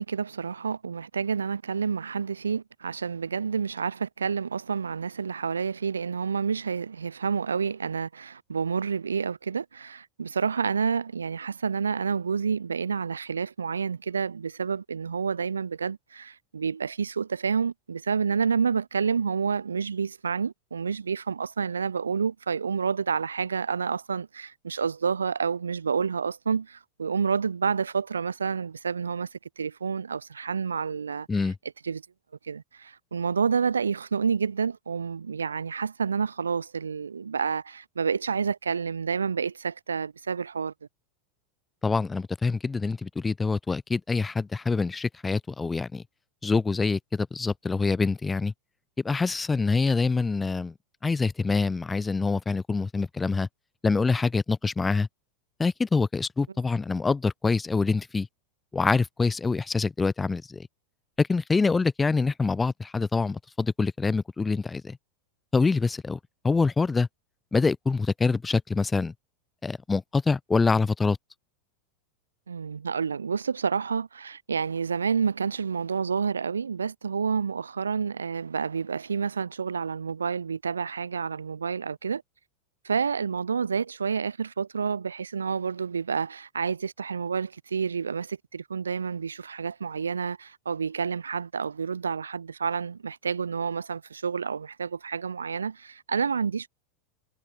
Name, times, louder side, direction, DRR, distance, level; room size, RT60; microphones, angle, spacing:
voice 1, 0.0-29.3 29.6-31.3 31.8-32.0 32.5-40.7 72.5-82.2 82.8-96.7, right 6 dB, 85° right, 3.0 m, -29 dB
voice 2, 41.8-46.0 46.4-48.5 49.0-50.7 51.0-53.5 53.8-55.1 55.6-58.3 58.7-60.7 61.2-65.0 65.5-66.2 66.4-67.1 67.5-69.1 69.6-71.2, left 4 dB, 15° left, 3.6 m, -25 dB
hypercardioid pair, 90°, 0 cm